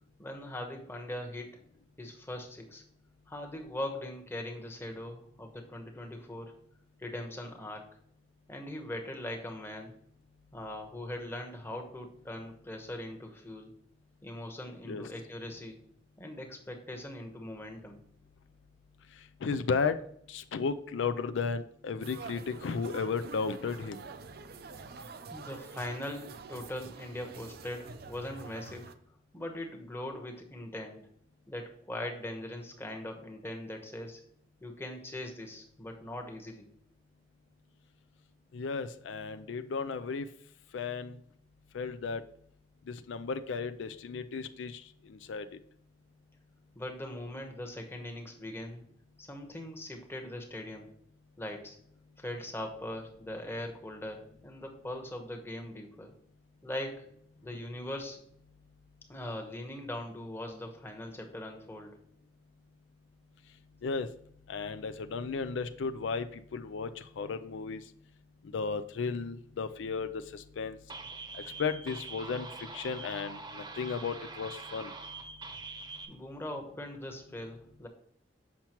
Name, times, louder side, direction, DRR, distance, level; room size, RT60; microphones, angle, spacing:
voice 1, 0.2-1.5 2.0-2.8 3.3-6.5 7.0-7.9 8.5-9.9 10.5-13.7 14.2-15.8 16.2-18.0 25.3-28.9 29.3-31.1 31.5-34.2 34.6-36.7 46.7-48.8 49.2-50.9 51.4-51.8 52.2-56.1 56.6-57.1 57.4-58.2 59.1-61.9 76.1-77.9, left 1 dB, 15° left, 2 dB, 1.0 m, -41 dB
voice 2, 19.4-20.0 20.3-24.0 38.5-40.3 40.7-41.2 41.7-42.2 42.9-44.8 45.1-45.4 63.8-64.1 64.5-66.9 67.2-67.8 68.5-70.8 71.3-72.5 72.7-74.9, left 5 dB, 85° left, 10 dB, 0.4 m, -34 dB
sound 1, 22.0-28.9, right 4 dB, 55° right, 0.5 m, -47 dB
sound 2, 70.9-76.1, right 3 dB, 25° right, 0.8 m, -44 dB
7.2 x 5.7 x 3.0 m, 0.67 s
head